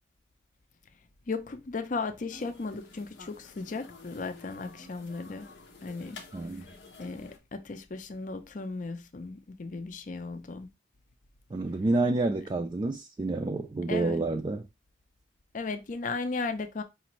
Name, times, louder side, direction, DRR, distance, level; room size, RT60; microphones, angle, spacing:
voice 1, 1.3-5.5 5.8-6.2 7.0-10.7 13.9-14.3 15.5-16.8, left 3 dB, 45° left, 0.5 m, -36 dB
sound 1, 2.3-7.4, left 3 dB, 85° left, 0.8 m, -50 dB
voice 2, 6.3-6.7 11.5-14.7, right 2 dB, 25° right, 0.3 m, -29 dB
5.0 x 2.5 x 3.0 m
head